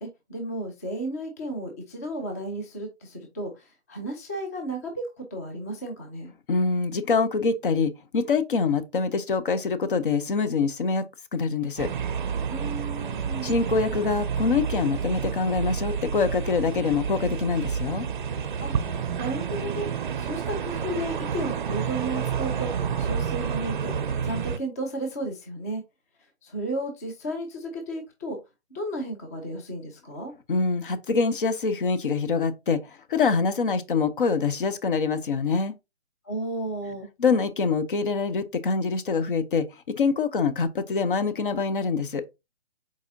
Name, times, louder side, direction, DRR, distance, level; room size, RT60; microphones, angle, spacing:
voice 1, 0.0-6.3 12.5-13.6 18.6-19.9 20.2-25.8 26.4-28.4 28.7-30.3 36.2-37.1, right 1 dB, 15° left, 0.5 m, -33 dB
voice 2, 6.5-11.0 11.3-11.9 13.4-18.1 30.5-35.7 37.2-42.2, left 4 dB, 50° left, 0.7 m, -25 dB
sound 1, 11.8-24.6, right 7 dB, 50° right, 0.5 m, -29 dB
4.8 x 4.2 x 2.6 m
figure-of-eight pair, 145°, 33 cm